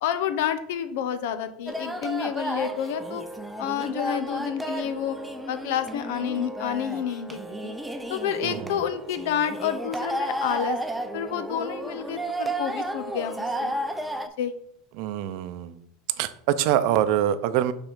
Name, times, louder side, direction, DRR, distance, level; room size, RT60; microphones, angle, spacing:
voice 1, 0.0-3.2 3.6-5.2 5.5-7.7 8.1-13.7 14.4-14.5, left 9 dB, 75° left, 11 dB, 0.8 m, -29 dB
sound 1, 1.7-14.3, right 1 dB, 5° right, 0.6 m, -33 dB
voice 2, 8.4-8.8 15.0-15.8 16.2-17.7, right 11 dB, 60° right, 13 dB, 0.5 m, -25 dB
5.6 x 4.1 x 5.6 m, 0.68 s
supercardioid pair, 125°, 0 cm